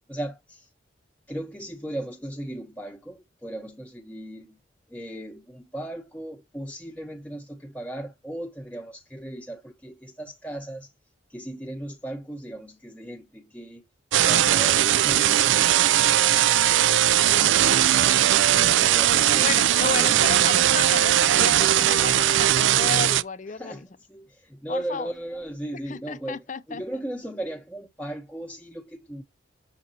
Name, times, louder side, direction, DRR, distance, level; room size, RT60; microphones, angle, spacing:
voice 1, 0.1-0.7 1.3-4.6 4.9-10.9 11.3-13.8 14.2-16.8 18.5-20.2 23.5-29.2, right 1 dB, 10° left, 0.9 m, -37 dB
sound 1, 14.1-23.2, right 11 dB, 75° right, 0.4 m, -19 dB
voice 2, 19.4-23.8 24.7-25.1 25.9-26.8, left 5 dB, 40° left, 0.5 m, -33 dB
6.6 x 6.4 x 2.8 m
head